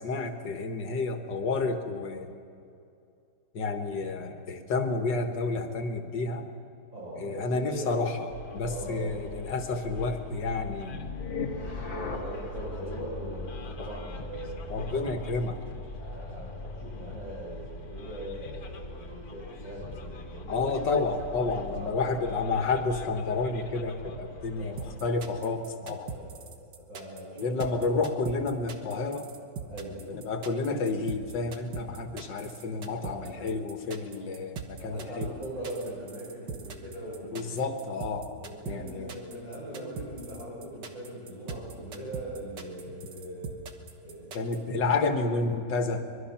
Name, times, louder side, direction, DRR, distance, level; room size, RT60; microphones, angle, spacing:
voice 1, 0.0-2.4 3.5-6.4 7.2-11.0 14.7-15.6 20.5-26.1 27.4-29.3 30.1-35.3 37.3-38.4 38.7-39.1 44.3-46.0, left 3 dB, 85° left, 6 dB, 2.1 m, -30 dB
voice 2, 6.9-7.9 8.6-9.2 11.4-15.1 16.0-20.7 21.7-22.2 24.3-24.8 26.1-27.6 29.7-30.0 32.9-33.5 34.0-34.3 34.8-37.6 38.1-43.5 44.0-44.6, right 1 dB, 45° right, -9 dB, 6.9 m, -41 dB
Bus, 8.3-25.0, left 3 dB, 60° left, 1.9 m, -43 dB
sound 1, 10.9-22.0, left 3 dB, 35° left, 1.1 m, -42 dB
sound 2, 24.8-44.6, right 6 dB, 80° right, 2.0 m, -40 dB
24.5 x 21.5 x 5.9 m, 2.5 s
omnidirectional pair, 1.9 m